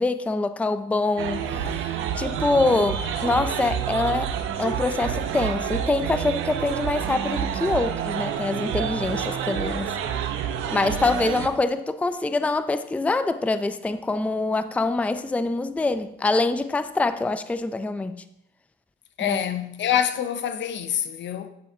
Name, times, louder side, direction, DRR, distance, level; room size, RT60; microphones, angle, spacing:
voice 1, 0.0-1.8 2.2-4.3 4.6-9.9 10.7-18.2 19.2-19.4, left 3 dB, 5° left, 0.4 m, -25 dB
sound 1, 1.2-11.5, right 8 dB, 90° right, 0.7 m, -28 dB
voice 2, 19.2-21.5, left 9 dB, 65° left, 0.7 m, -26 dB
9.6 x 7.9 x 2.8 m
cardioid pair, 90°, 20 cm